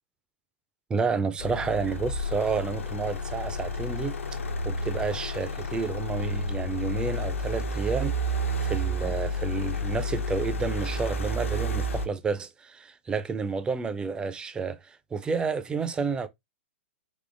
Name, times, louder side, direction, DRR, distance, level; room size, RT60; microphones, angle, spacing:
voice 1, 0.9-4.1 4.6-16.3, right 5 dB, 10° right, 0.3 m, -30 dB
sound 1, 1.4-12.1, equal, 80° left, 0.6 m, -31 dB
3.6 x 2.9 x 2.4 m
figure-of-eight pair, 110°, 7 cm